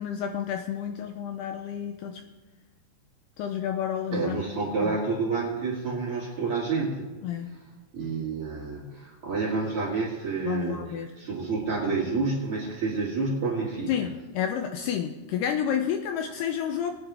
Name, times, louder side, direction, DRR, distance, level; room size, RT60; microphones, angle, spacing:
voice 1, 0.0-2.2 3.4-4.4 4.8-5.0 7.2-7.5 10.5-11.1 13.9-16.9, left 9 dB, 80° left, 6 dB, 2.4 m, -30 dB
voice 2, 4.1-7.1 7.9-10.8 11.2-14.1, right 4 dB, 40° right, -6 dB, 2.2 m, -29 dB
18.5 x 9.5 x 3.4 m, 1.3 s
omnidirectional pair, 5.1 m